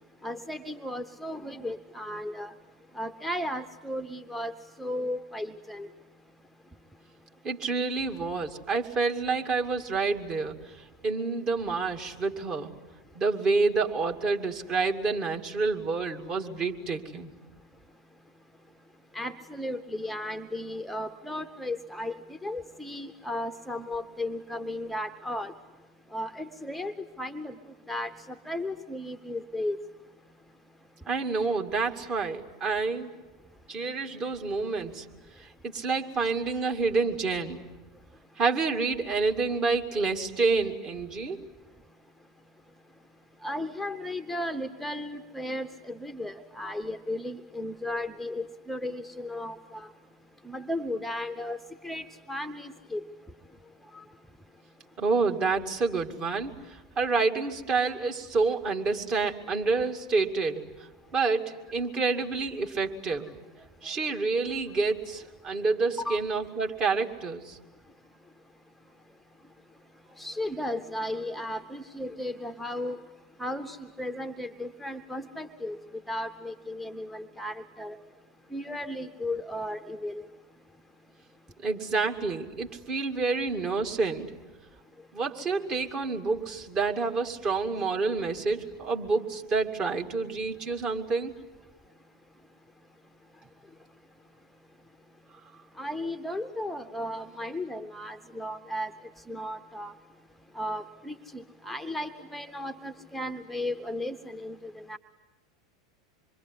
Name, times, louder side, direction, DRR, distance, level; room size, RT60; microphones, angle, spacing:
voice 1, 0.2-2.5 2.9-4.5 4.8-5.9 19.1-22.2 22.4-25.5 26.1-27.5 27.9-28.1 28.5-29.8 43.4-49.9 50.5-51.6 51.8-53.1 53.9-54.0 66.0-66.2 70.2-73.0 73.4-75.8 76.1-78.0 78.5-80.2 95.8-98.9 99.3-99.9 100.5-105.0, left 1 dB, 5° left, 9 dB, 0.9 m, -35 dB
voice 2, 7.4-10.6 11.0-12.7 13.2-17.3 31.1-33.1 33.7-35.0 35.4-37.6 38.4-41.5 55.0-60.7 61.1-63.3 63.8-67.6 81.6-84.3 85.1-91.3, right 4 dB, 30° right, 2 dB, 2.2 m, -28 dB
26.0 x 22.5 x 9.8 m, 1.2 s
figure-of-eight pair, 85°, 2 cm